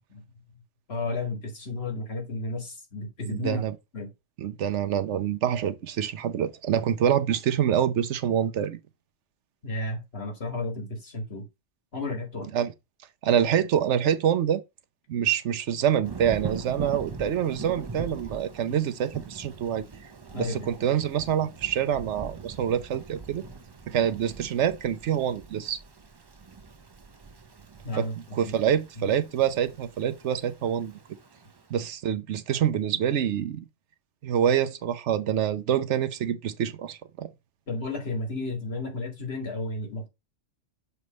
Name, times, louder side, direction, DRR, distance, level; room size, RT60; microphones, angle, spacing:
voice 1, 0.9-3.6 3.9-4.1 9.6-11.4 11.9-12.5 20.3-20.7 27.8-28.5 29.0-29.1 37.7-40.1, left 2 dB, 60° left, 2.0 m, -33 dB
voice 2, 3.3-3.7 4.4-8.8 12.5-12.7 13.2-14.6 15.1-19.8 20.4-23.4 23.9-25.8 28.0-28.1 28.3-30.9 31.7-33.6 34.2-37.3, right 9 dB, 75° right, 1.0 m, -26 dB
Thunder / Rain, 16.0-31.6, right 4 dB, 35° right, 0.4 m, -42 dB
6.8 x 3.2 x 5.2 m
omnidirectional pair, 1.2 m